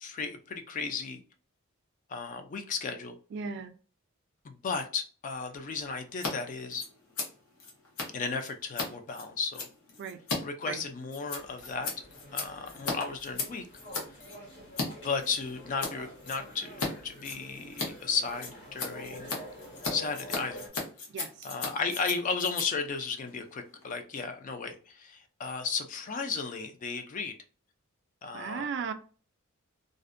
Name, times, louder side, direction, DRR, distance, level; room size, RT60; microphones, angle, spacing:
voice 1, 0.0-1.2 2.1-3.2 4.4-6.8 8.1-9.7 10.4-11.9 12.3-13.7 15.0-19.3 19.9-20.7 21.4-27.3 28.2-28.6, left 5 dB, 40° left, 7 dB, 0.3 m, -34 dB
voice 2, 3.3-3.7 10.0-10.2 10.6-10.8 21.1-21.5 28.3-28.9, right 6 dB, 55° right, 9 dB, 0.3 m, -36 dB
Scissors, 6.1-6.3 6.6-14.9 15.2-15.9 16.2-16.9 17.2-23.9, left 3 dB, 80° left, 0.9 m, -37 dB
sound 1, 11.3-20.7, equal, 55° left, 1.1 m, -48 dB
2.5 x 2.1 x 2.4 m, 0.39 s
head